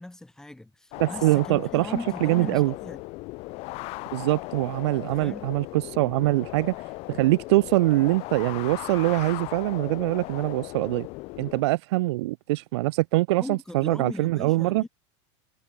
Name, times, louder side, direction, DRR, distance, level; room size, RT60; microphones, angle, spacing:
voice 1, 0.0-3.0 5.1-5.5 13.4-14.9, left 1 dB, 5° left, 2.3 m, -39 dB
sound 1, 0.9-11.6, left 24 dB, 40° left, 2.1 m, -37 dB
voice 2, 1.0-2.7 4.1-6.7 7.1-11.1 11.4-14.8, right 19 dB, 65° right, 0.7 m, -24 dB
supercardioid pair, 155°, 15 cm